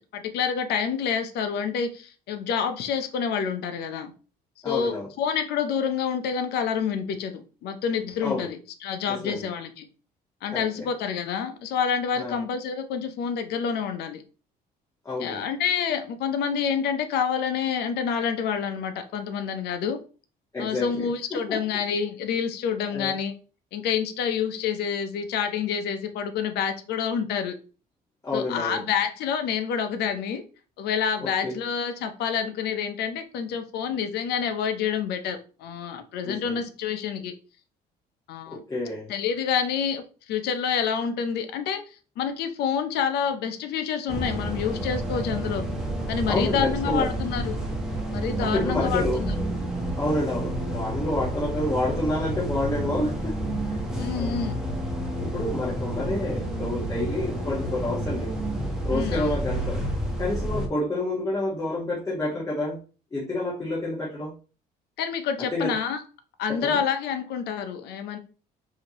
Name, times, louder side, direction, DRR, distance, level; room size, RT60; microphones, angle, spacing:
voice 1, 0.1-4.1 4.6-9.9 10.4-14.2 15.2-20.0 20.6-23.3 23.7-27.6 28.3-30.4 30.8-37.3 38.3-38.6 39.1-45.6 46.1-47.6 48.1-49.3 54.0-54.6 58.9-59.4 65.0-66.0 66.4-68.2, left 7 dB, 75° left, 8 dB, 0.7 m, -28 dB
voice 2, 4.6-5.1 8.2-8.5 9.1-9.5 10.5-10.9 12.1-12.4 15.0-15.4 20.5-21.6 22.9-23.1 28.2-28.8 31.2-31.6 36.2-36.6 38.5-39.1 46.3-47.1 48.4-49.2 50.0-53.4 53.7-53.8 54.1-54.4 55.3-58.3 58.8-59.8 60.2-62.8 63.1-64.3 65.4-65.8 66.5-66.8, left 1 dB, 20° left, -6 dB, 1.3 m, -29 dB
sound 1, 44.1-60.7, right 1 dB, 5° right, 1.1 m, -30 dB
4.9 x 2.8 x 2.9 m, 0.37 s
cardioid pair, 110°, 17 cm